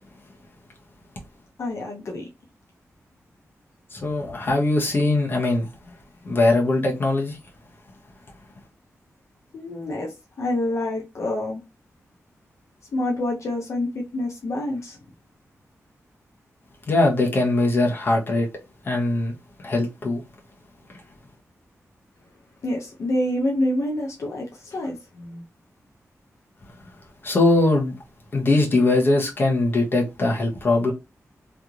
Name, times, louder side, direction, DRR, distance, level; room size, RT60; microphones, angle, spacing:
voice 1, 1.6-2.3 9.5-11.6 12.9-15.0 22.6-25.4, left 1 dB, 65° left, 0.8 m, -27 dB
voice 2, 3.9-5.7 6.2-7.4 16.9-18.5 18.8-19.3 19.6-20.2 27.2-27.9 28.3-30.9, left 2 dB, 40° left, 1.0 m, -21 dB
3.3 x 2.9 x 2.4 m
wide cardioid pair, 175°, 5 cm